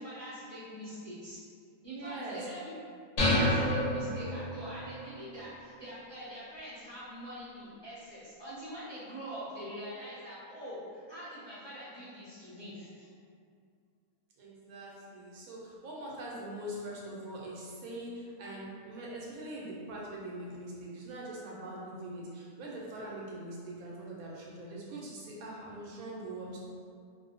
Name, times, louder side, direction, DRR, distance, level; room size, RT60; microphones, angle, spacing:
voice 1, 0.0-1.4 1.8-2.7 3.3-13.1, equal, 25° left, -13 dB, 0.6 m, -44 dB
voice 2, 1.8-2.5 14.4-26.6, right 1 dB, 90° right, -4 dB, 1.1 m, -42 dB
sound 1, 3.2-4.8, left 1 dB, 70° left, 0.9 m, -28 dB
2.6 x 2.1 x 2.5 m, 2.2 s
omnidirectional pair, 1.5 m